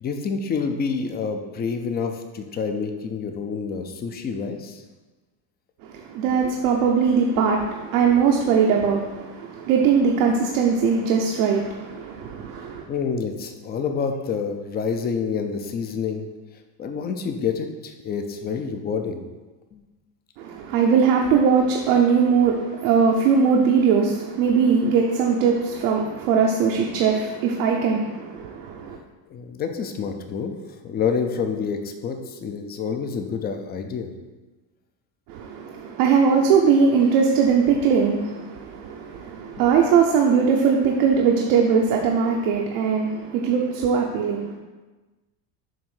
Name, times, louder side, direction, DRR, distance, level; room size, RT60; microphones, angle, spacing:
voice 1, 0.0-4.8 12.9-16.3 16.8-19.2 19.7-19.8 29.3-30.5 30.8-34.1, left 6 dB, 20° left, 6 dB, 0.4 m, -28 dB
voice 2, 5.8-12.8 20.4-29.0 35.3-44.6, right 6 dB, 80° right, 0 dB, 0.9 m, -20 dB
7.4 x 2.6 x 5.6 m, 1.2 s
cardioid pair, 130°, 48 cm